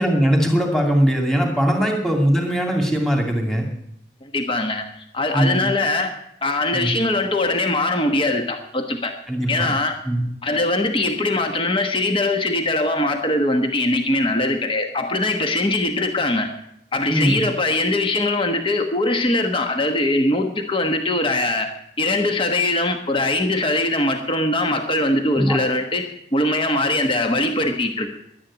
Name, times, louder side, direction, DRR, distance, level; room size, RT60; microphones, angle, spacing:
voice 1, 0.0-3.7 5.3-5.6 6.7-6.9 9.3-9.7 10.0-10.2 17.1-17.4 25.3-25.6, equal, ahead, 1 dB, 2.5 m, -20 dB
voice 2, 4.2-4.8 5.1-9.1 9.5-10.0 10.4-16.5 16.9-21.7 22.0-28.1, left 2 dB, 25° left, 5 dB, 1.2 m, -21 dB
11.5 x 10.0 x 9.8 m, 0.74 s
head